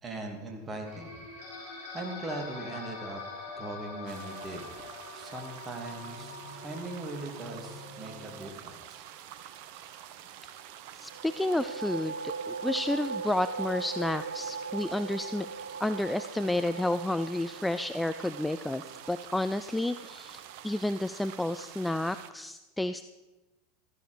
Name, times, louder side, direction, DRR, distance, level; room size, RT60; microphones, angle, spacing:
voice 1, 0.0-1.3 1.6-3.2 3.6-4.6 5.1-9.0, right 2 dB, 20° right, 3 dB, 2.8 m, -40 dB
sound 1, 0.9-8.5, left 3 dB, 60° left, 4.2 m, -44 dB
sound 2, 4.1-22.3, right 10 dB, 50° right, 0.9 m, -48 dB
voice 2, 11.0-15.5 15.8-23.1, left 1 dB, 5° left, 12 dB, 0.4 m, -31 dB
sound 3, 11.1-20.5, right 5 dB, 80° right, 0.4 m, -40 dB
15.0 x 13.5 x 5.1 m, 1.1 s
figure-of-eight pair, 85°, 0 cm